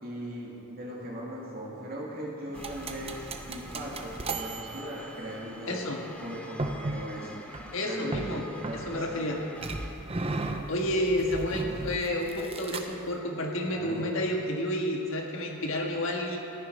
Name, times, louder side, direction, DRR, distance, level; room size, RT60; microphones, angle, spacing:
voice 1, 0.0-5.8 6.2-7.4 7.8-9.0 11.6-12.0 13.6-14.1, right 1 dB, 45° right, -4 dB, 2.4 m, -39 dB
sound 1, 2.5-10.0, left 1 dB, 5° left, 0.7 m, -47 dB
sound 2, 2.5-5.5 6.6-7.1 7.5-7.7 8.1-9.2 9.6-13.1, right 2 dB, 25° right, 0.6 m, -36 dB
voice 2, 5.7-6.0 7.7-8.4 8.7-9.4 10.7-16.4, left 1 dB, 65° left, 0 dB, 1.6 m, -30 dB
14.0 x 10.0 x 5.4 m, 3.0 s
head